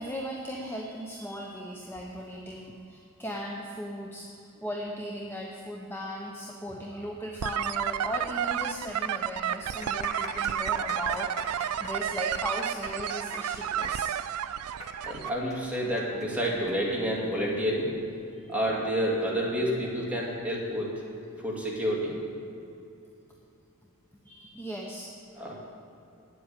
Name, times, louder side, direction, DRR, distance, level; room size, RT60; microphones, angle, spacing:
voice 1, 0.0-14.1 18.3-18.5 24.2-25.1 25.4-25.5, equal, 10° left, -1 dB, 0.8 m, -38 dB
sound 1, 7.4-15.3, right 10 dB, 80° right, 0.4 m, -31 dB
sound 2, 8.5-8.6 8.8-8.9 9.5-16.7 17.0-17.1 17.9-18.1, left 2 dB, 30° left, 2.0 m, -42 dB
voice 2, 15.0-17.9 18.5-20.9 21.4-22.2 25.4-25.5, equal, 5° right, -5 dB, 2.4 m, -29 dB
8.7 x 7.9 x 9.1 m, 2.6 s
head